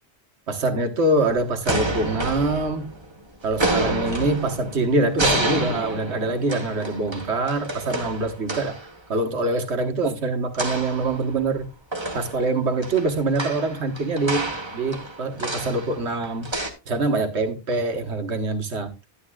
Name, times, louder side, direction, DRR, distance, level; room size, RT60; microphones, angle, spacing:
voice 1, 0.5-2.9 3.4-8.8 9.1-11.7 12.1-16.5 16.9-18.9, right 2 dB, 85° right, 1.7 m, -24 dB
sound 1, 1.3-3.1 3.5-8.9 10.5-11.6 11.9-16.7, right 1 dB, 25° right, 1.6 m, -29 dB
12.0 x 11.0 x 2.4 m
omnidirectional pair, 1.1 m